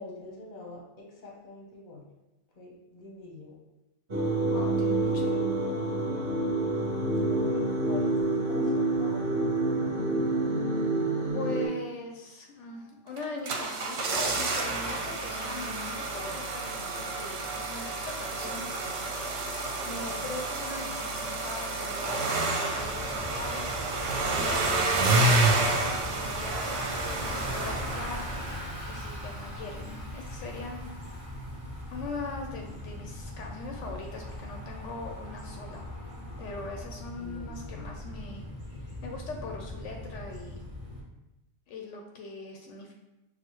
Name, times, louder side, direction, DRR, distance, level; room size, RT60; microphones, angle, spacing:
voice 1, 0.0-2.0 2.6-3.6 5.0-6.4 7.2-9.5 19.9-20.3 37.2-38.0, left 2 dB, 45° left, -2 dB, 0.9 m, -45 dB
sound 1, 4.1-11.7, right 2 dB, 55° right, 1.2 m, -27 dB
voice 2, 4.4-5.4 11.3-18.7 19.8-23.7 24.3-28.4 28.9-30.9 31.9-35.8 36.4-38.4 38.8-40.6 41.7-42.9, left 3 dB, 80° left, 2 dB, 0.9 m, -41 dB
sound 2, 13.2-28.7 28.9-29.0, right 2 dB, 80° right, 1.0 m, -29 dB
Bicycle, 22.8-41.0, equal, 30° right, 1.4 m, -40 dB
6.1 x 2.3 x 2.9 m, 0.95 s
omnidirectional pair, 1.2 m